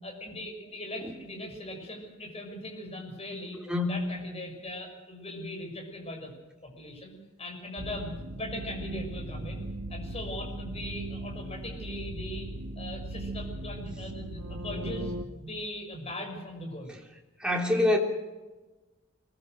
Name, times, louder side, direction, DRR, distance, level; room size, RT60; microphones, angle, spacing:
voice 1, 0.0-3.6 3.8-6.3 6.6-9.6 9.9-12.5 12.8-15.2 15.4-17.0, left 1 dB, 30° left, 2 dB, 6.3 m, -40 dB
voice 2, 3.7-4.0 17.4-18.0, left 1 dB, 5° right, 0 dB, 3.5 m, -25 dB
sound 1, 7.8-15.2, right 1 dB, 80° right, 1.5 m, -38 dB
24.5 x 20.0 x 6.7 m, 1.2 s
head